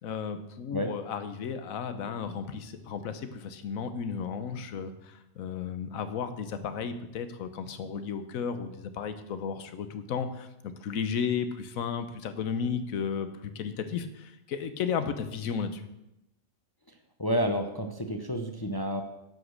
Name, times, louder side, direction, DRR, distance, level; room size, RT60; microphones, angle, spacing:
voice 1, 0.0-15.8, left 6 dB, 75° left, 10 dB, 1.2 m, -34 dB
voice 2, 17.2-19.0, equal, 30° left, 5 dB, 0.4 m, -29 dB
11.0 x 5.0 x 6.3 m, 0.88 s
omnidirectional pair, 1.5 m